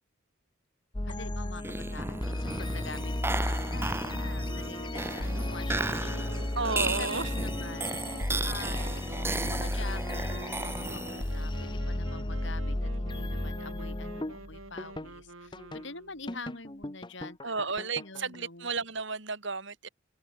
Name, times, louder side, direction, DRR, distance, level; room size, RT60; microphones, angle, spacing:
sound 1, 0.9-15.1 15.5-15.9 16.3-18.4, left 1 dB, 20° left, 1.0 m, -34 dB
voice 1, 1.0-6.6 6.9-9.0 9.3-18.7, left 3 dB, 60° left, 6.6 m, -46 dB
sound 2, 1.6-11.5, right 2 dB, 10° right, 0.9 m, -35 dB
sound 3, 4.4-16.3, right 2 dB, 80° right, 4.3 m, -47 dB
voice 2, 6.6-7.3 17.4-19.9, right 4 dB, 60° right, 3.1 m, -33 dB
open air
head